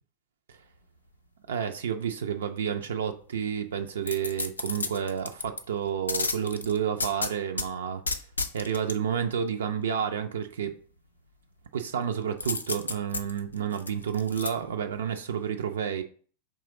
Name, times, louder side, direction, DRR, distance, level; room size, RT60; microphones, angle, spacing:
voice 1, 1.5-8.0 8.5-10.7 11.7-16.0, right 8 dB, 65° right, 0.3 m, -30 dB
sound 1, 4.0-5.6 6.1-7.7 8.1-9.0 12.4-14.5 15.0-15.1, left 3 dB, 80° left, 0.3 m, -32 dB
3.8 x 3.0 x 3.7 m
figure-of-eight pair, 90°, 0 cm